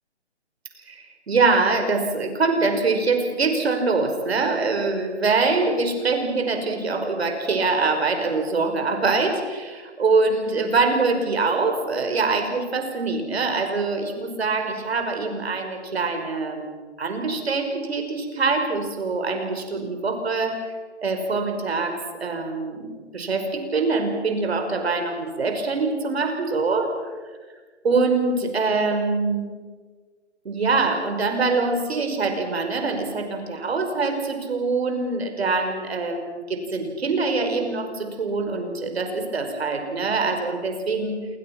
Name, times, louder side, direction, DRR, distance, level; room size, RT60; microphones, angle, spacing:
voice 1, 0.9-16.7 17.0-20.6 21.0-26.9 27.8-29.5 30.4-41.1, right 3 dB, 60° right, 5 dB, 5.5 m, -24 dB
27.5 x 24.5 x 6.1 m, 1.5 s
hypercardioid pair, 170°, 35 cm